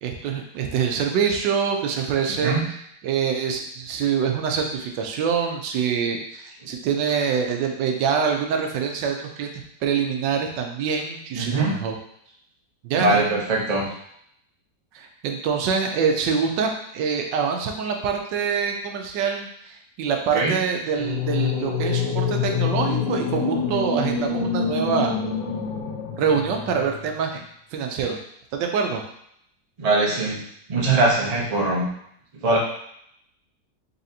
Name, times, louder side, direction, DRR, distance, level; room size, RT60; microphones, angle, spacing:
voice 1, 0.0-2.6 3.0-9.5 9.8-11.9 12.8-13.2 14.9-25.2 26.2-27.4 27.7-28.2 28.5-29.0, right 6 dB, 80° right, 3 dB, 1.3 m, -25 dB
voice 2, 2.3-2.7 11.3-11.8 12.9-13.9 20.3-20.6 29.8-30.4 30.7-31.9 32.4-32.6, right 2 dB, 40° right, -3 dB, 0.5 m, -22 dB
sound 1, 20.9-27.1, left 6 dB, 85° left, 1.4 m, -26 dB
4.1 x 3.2 x 2.7 m, 0.72 s
omnidirectional pair, 1.9 m